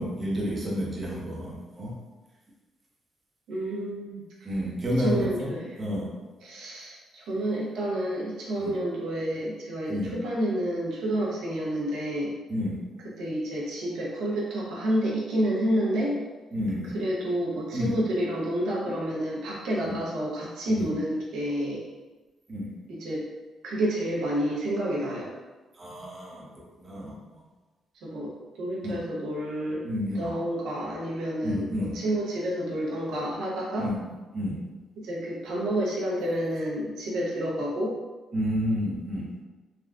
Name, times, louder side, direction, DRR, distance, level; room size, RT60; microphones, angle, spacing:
voice 1, 0.0-1.9 4.4-5.5 5.8-6.1 8.6-8.8 9.9-10.1 12.5-12.8 16.5-17.0 17.7-17.9 19.8-20.0 20.7-20.9 22.5-22.7 25.7-27.2 28.8-29.0 29.8-30.3 31.4-32.0 33.8-34.6 38.3-39.3, equal, 30° right, -4 dB, 0.8 m, -30 dB
voice 2, 3.5-4.5 5.0-5.8 6.4-12.4 13.2-16.2 16.9-21.8 22.9-23.3 23.6-25.3 28.0-29.9 30.2-33.9 35.0-38.0, right 1 dB, 85° right, -4 dB, 0.7 m, -29 dB
3.4 x 2.4 x 2.3 m, 1.2 s
cardioid pair, 90°, 0 cm